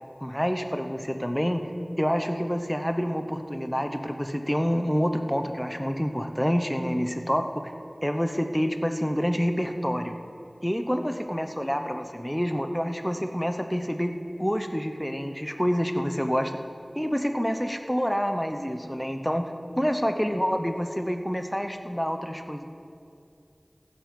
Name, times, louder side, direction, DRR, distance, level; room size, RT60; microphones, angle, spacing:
voice 1, 0.2-1.7 2.0-7.7 8.0-10.2 10.6-16.6 16.9-19.5 19.8-22.6, equal, 10° left, 6 dB, 0.9 m, -27 dB
14.5 x 7.3 x 6.0 m, 2.5 s
wide cardioid pair, 45°, 0 cm